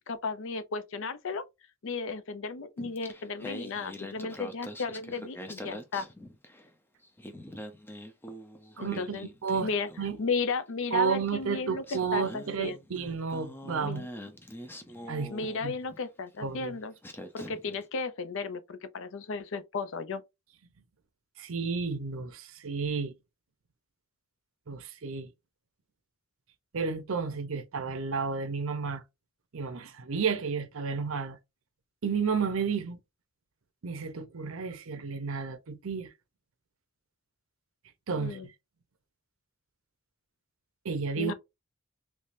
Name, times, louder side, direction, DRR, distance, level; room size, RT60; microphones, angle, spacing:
voice 1, 0.1-1.5 1.8-6.1 8.8-9.3 9.6-9.9 10.2-12.8 13.8-14.1 15.3-16.9 17.3-20.2 38.2-38.5 41.2-41.3, left 4 dB, 60° left, 0.5 m, -34 dB
Singing, 2.8-6.7 7.0-10.3 11.3-11.4 11.8-16.0 16.6-16.8 17.0-17.8, left 1 dB, 10° left, 0.5 m, -44 dB
voice 2, 8.8-9.7 10.0-10.2 10.9-14.0 15.1-15.3 15.6-15.7 16.4-16.7 21.4-23.1 24.7-25.3 26.7-29.0 29.5-31.4 32.0-33.0 33.8-36.1 38.1-38.4 40.8-41.3, right 5 dB, 65° right, 0.6 m, -32 dB
3.3 x 3.2 x 2.5 m
head